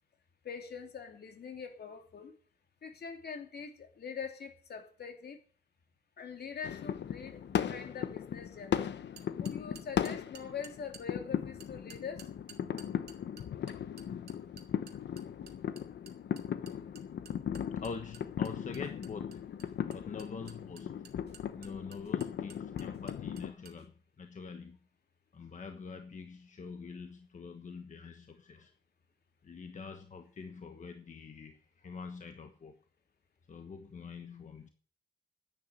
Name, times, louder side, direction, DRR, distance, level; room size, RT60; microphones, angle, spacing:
voice 1, 0.4-2.4 2.8-5.4 6.2-8.9 9.4-12.3, left 6 dB, 65° left, 2.9 m, -43 dB
sound 1, 6.6-23.5, left 9 dB, 85° left, 0.9 m, -37 dB
sound 2, 9.2-11.0 11.6-23.8, right 6 dB, 70° right, 2.1 m, -54 dB
voice 2, 17.8-21.1 21.5-24.8 25.3-28.7 29.4-32.8 33.5-34.7, left 5 dB, 45° left, 1.3 m, -45 dB
10.5 x 9.3 x 9.1 m
wide cardioid pair, 140°, 18 cm